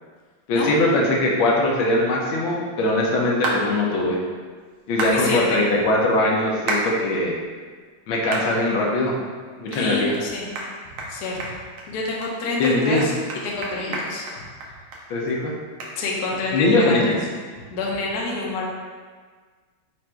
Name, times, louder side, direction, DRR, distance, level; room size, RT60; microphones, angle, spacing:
voice 1, 0.5-4.2 4.9-7.3 8.1-9.2 9.6-10.2 12.6-13.1 15.1-15.6 16.5-17.1, left 1 dB, 75° left, -2 dB, 1.5 m, -21 dB
sound 1, 3.4-3.6 5.0-5.2 6.7-6.9 7.4-7.5 8.3-8.5 9.0-9.1 9.7-9.8 10.1-10.2 10.6-10.7 11.0-11.1 11.4-11.9 12.2-12.3 12.6-15.0 15.3-15.4 15.8-15.9, right 2 dB, 85° right, 1.6 m, -28 dB
voice 2, 5.0-5.6 9.7-10.5 11.1-11.6 11.9-14.2 16.0-17.1 17.7-18.7, left 3 dB, 60° left, -2 dB, 1.0 m, -27 dB
4.7 x 2.5 x 4.3 m, 1.5 s
omnidirectional pair, 2.2 m